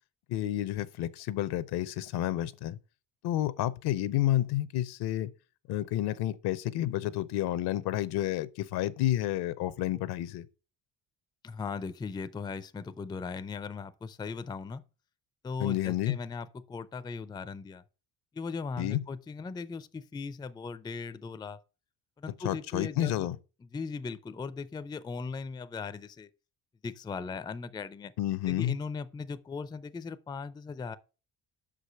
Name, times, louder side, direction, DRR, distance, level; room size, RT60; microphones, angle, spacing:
voice 1, 0.3-2.8 3.2-5.3 5.7-10.5 15.6-16.2 18.8-19.0 22.4-23.4 28.2-28.8, left 13 dB, 75° left, 0.7 m, -30 dB
voice 2, 11.4-14.8 15.4-17.8 18.3-21.6 22.2-23.3 23.7-26.3 26.8-28.1 28.5-31.0, left 5 dB, 10° left, 0.3 m, -38 dB
6.1 x 5.0 x 6.6 m
cardioid pair, 105°, 40 cm